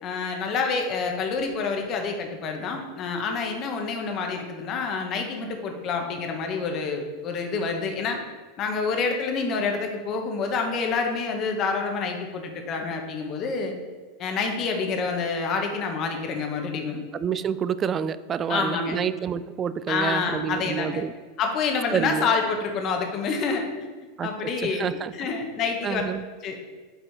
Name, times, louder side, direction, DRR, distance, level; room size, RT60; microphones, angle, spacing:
voice 1, 0.0-8.2 8.6-13.7 14.2-17.0 18.5-19.0 19.9-21.0 21.4-23.6 24.2-26.0 26.4-26.6, left 4 dB, 45° left, 3 dB, 1.3 m, -27 dB
voice 2, 17.2-21.1 21.9-22.3 24.2-24.3 24.6-25.1 25.8-26.2, right 8 dB, 30° right, 15 dB, 0.3 m, -28 dB
8.0 x 4.3 x 4.3 m, 1.3 s
hypercardioid pair, 115°, 0 cm